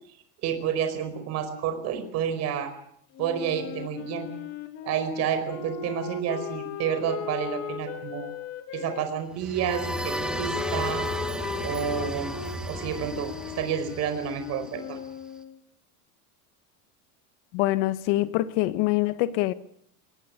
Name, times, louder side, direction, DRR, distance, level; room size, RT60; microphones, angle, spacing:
voice 1, 0.4-2.7 3.2-4.3 4.8-8.3 8.7-11.1 11.6-12.4 12.7-15.0, right 8 dB, 35° right, 5.0 m, -30 dB
Wind instrument woodwind instrument, 3.1-9.1 9.7-15.6, left 8 dB, 35° left, 2.7 m, -37 dB
sound 1, 9.3-15.1, right 1 dB, ahead, 1.2 m, -34 dB
voice 2, 17.5-19.5, left 17 dB, 55° left, 1.7 m, -24 dB
25.5 x 19.0 x 8.3 m
cardioid pair, 180°, 42 cm